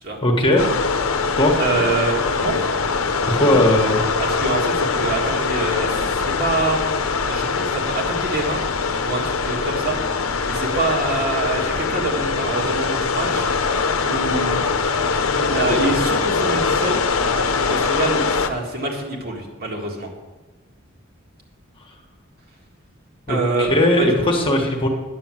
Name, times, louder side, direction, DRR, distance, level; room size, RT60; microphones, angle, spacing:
voice 1, 0.2-0.7 1.4-1.5 3.3-4.0 23.3-24.9, left 1 dB, 25° left, 1 dB, 1.4 m, -18 dB
sound 1, 0.6-18.5, left 4 dB, 75° left, 0.8 m, -22 dB
voice 2, 1.6-2.6 4.2-6.9 7.2-8.6 9.0-10.0 10.5-13.4 14.1-14.6 15.4-17.0 17.7-20.1 23.3-24.3, right 3 dB, 50° right, 0 dB, 1.9 m, -25 dB
9.7 x 7.0 x 7.5 m, 1.2 s
head